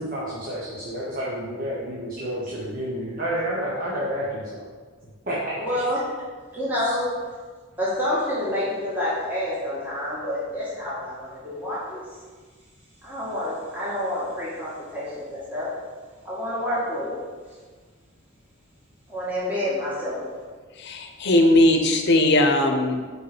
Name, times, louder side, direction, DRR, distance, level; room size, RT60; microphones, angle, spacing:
voice 1, 0.0-4.6 5.3-5.6, equal, 45° right, -7 dB, 1.2 m, -29 dB
voice 2, 5.6-6.0 6.5-7.1 7.8-12.1 13.0-15.7 16.3-17.2 19.1-20.2, left 1 dB, 10° right, -10 dB, 1.6 m, -28 dB
voice 3, 20.8-23.0, left 1 dB, 55° left, 4 dB, 0.8 m, -19 dB
5.3 x 4.9 x 6.0 m, 1.5 s
head